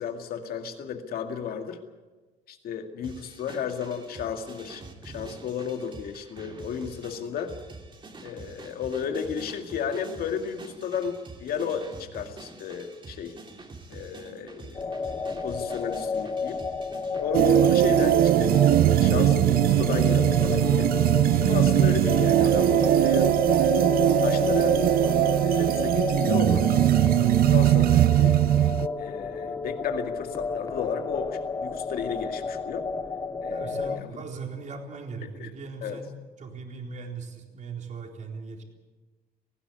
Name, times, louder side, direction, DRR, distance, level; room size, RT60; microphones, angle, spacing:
voice 1, 0.0-1.8 2.5-7.5 8.2-13.3 13.9-15.2 15.4-16.6 17.2-20.9 21.4-23.3 23.8-26.6 27.5-28.3 29.0-32.8 33.4-34.1 35.4-35.5 35.8-36.0, left 7 dB, 60° left, 6 dB, 2.2 m, -33 dB
sound 1, 3.0-17.3, right 3 dB, 30° right, 2.9 m, -46 dB
sound 2, 14.8-34.0, left 4 dB, 20° left, 0.9 m, -31 dB
sound 3, 17.3-28.9, right 13 dB, 60° right, 0.6 m, -20 dB
voice 2, 33.5-36.1 36.4-38.6, right 4 dB, 45° right, 2 dB, 4.0 m, -39 dB
18.0 x 16.0 x 9.6 m, 1.3 s
cardioid pair, 110°, 17 cm